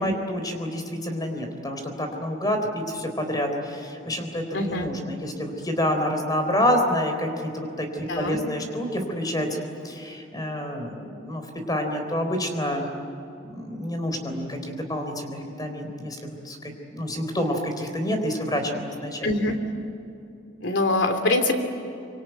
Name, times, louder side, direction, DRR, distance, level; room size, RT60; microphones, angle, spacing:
voice 1, 0.0-9.5 9.8-12.9 13.5-19.3, equal, 20° left, 5 dB, 3.9 m, -28 dB
voice 2, 4.5-4.9 8.0-8.4 19.2-19.6 20.6-21.6, left 2 dB, 75° left, 6 dB, 3.1 m, -24 dB
25.0 x 25.0 x 9.3 m, 2.7 s
head